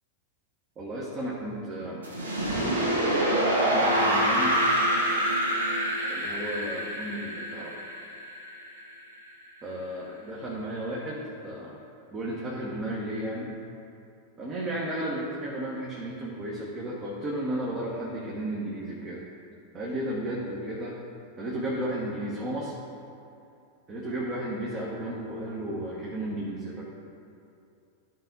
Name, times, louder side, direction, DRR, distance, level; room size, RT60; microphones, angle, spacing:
voice 1, 0.8-2.0 3.3-4.8 6.1-7.8 9.6-11.8 12.1-13.5 14.4-19.2 19.7-21.0 21.4-22.8 23.9-26.8, right 1 dB, 25° right, -4 dB, 1.2 m, -33 dB
sound 1, 2.0-8.9, right 1 dB, 70° right, 1.3 m, -26 dB
13.0 x 4.6 x 3.9 m, 2.6 s
figure-of-eight pair, 90°, 0 cm